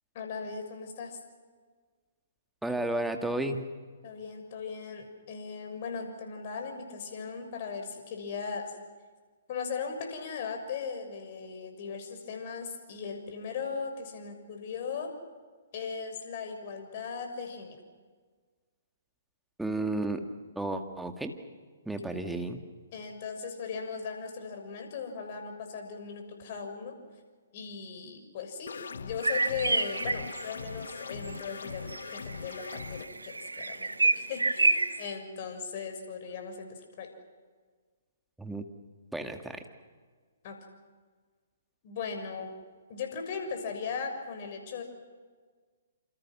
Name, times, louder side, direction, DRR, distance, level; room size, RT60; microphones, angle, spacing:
voice 1, 0.1-1.2 4.0-8.8 9.5-15.1 15.7-17.8 22.9-26.9 27.5-37.1 40.4-40.6 41.8-42.5 42.9-44.8, left 5 dB, 45° left, 5 dB, 6.4 m, -38 dB
voice 2, 2.6-3.6 19.6-20.2 20.6-21.3 21.9-22.6 38.4-38.6 39.1-39.6, right 2 dB, 5° right, 5 dB, 2.2 m, -32 dB
sound 1, 28.7-33.1, left 5 dB, 65° left, 1.2 m, -41 dB
sound 2, 29.2-30.5 31.3-31.4 31.7-35.1, right 3 dB, 85° right, 1.4 m, -28 dB
28.5 x 28.0 x 6.2 m, 1.5 s
figure-of-eight pair, 130°, 0 cm